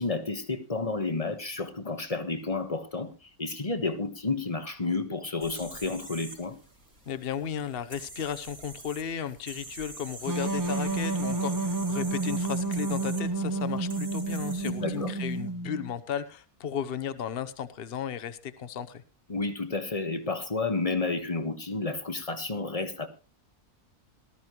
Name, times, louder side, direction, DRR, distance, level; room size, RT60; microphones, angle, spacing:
voice 1, 0.0-6.6 14.6-15.1 19.3-23.1, left 3 dB, 25° left, 1.3 m, -31 dB
sound 1, 5.4-15.4, right 2 dB, 60° right, 4.5 m, -45 dB
voice 2, 7.1-19.0, left 8 dB, 45° left, 1.1 m, -35 dB
sound 2, 10.3-15.9, right 3 dB, 25° right, 0.4 m, -30 dB
19.0 x 13.0 x 3.1 m
omnidirectional pair, 1.6 m